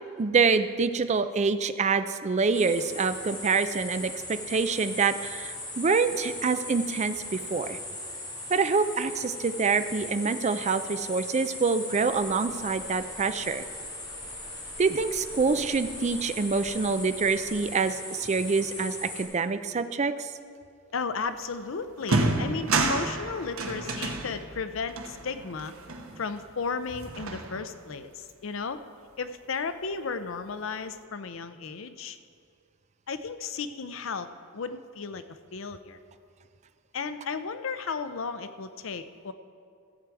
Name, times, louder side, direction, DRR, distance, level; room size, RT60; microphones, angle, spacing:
voice 1, 0.2-7.8 8.5-13.6 14.8-20.3, right 4 dB, 35° right, 11 dB, 0.4 m, -26 dB
sound 1, 2.5-19.2, left 2 dB, 20° left, 1.9 m, -39 dB
sound 2, 12.0-17.6, right 1 dB, 65° right, 2.3 m, -50 dB
voice 2, 20.9-25.7 26.2-28.8 29.2-32.2 33.1-34.3 34.5-35.2 35.5-36.0 36.9-39.3, left 5 dB, 70° left, 11 dB, 0.6 m, -34 dB
sound 3, 21.4-21.5 22.0-26.6 26.9-27.9, right 3 dB, 85° right, 1.0 m, -30 dB
15.0 x 7.6 x 4.7 m, 2.3 s
head